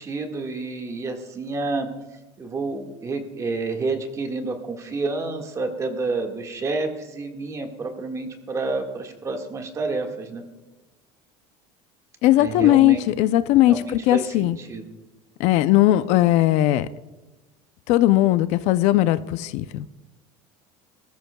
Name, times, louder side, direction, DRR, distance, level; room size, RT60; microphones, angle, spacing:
voice 1, 0.0-1.9 2.4-10.4 12.4-13.0 13.6-14.9, right 3 dB, 25° right, 4 dB, 1.7 m, -29 dB
voice 2, 12.2-14.6 15.4-16.9 17.9-19.9, left 15 dB, 60° left, 13 dB, 0.5 m, -18 dB
21.5 x 14.0 x 2.3 m, 1.1 s
cardioid pair, 145°, 13 cm